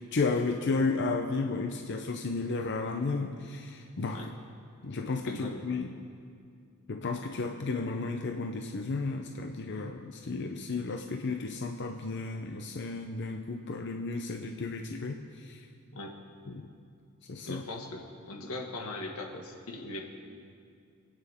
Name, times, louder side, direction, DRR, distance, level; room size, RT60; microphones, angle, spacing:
voice 1, 0.1-4.3 4.8-5.9 6.9-15.7 16.5-16.7 17.3-17.6, left 3 dB, 55° left, 4 dB, 0.7 m, -33 dB
voice 2, 5.3-5.6 15.9-16.2 17.4-20.0, left 2 dB, 90° left, 1 dB, 1.8 m, -40 dB
26.5 x 9.1 x 3.6 m, 2.3 s
head